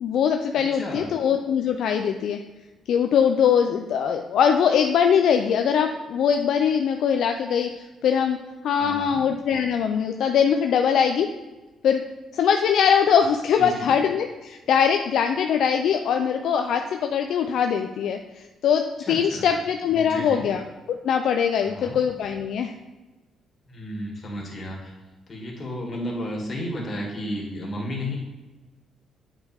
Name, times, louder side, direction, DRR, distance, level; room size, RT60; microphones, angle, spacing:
voice 1, 0.0-2.4 2.9-8.4 8.6-11.3 11.8-12.0 12.3-20.6 20.9-22.7, left 7 dB, 75° left, 5 dB, 0.4 m, -22 dB
voice 2, 0.7-1.1 8.8-9.2 13.5-13.9 19.0-19.5 19.9-20.4 21.6-22.0 23.7-24.9 25.3-28.2, left 1 dB, 45° left, -2 dB, 2.2 m, -33 dB
8.7 x 5.0 x 3.5 m, 1.2 s
cardioid pair, 90°, 0 cm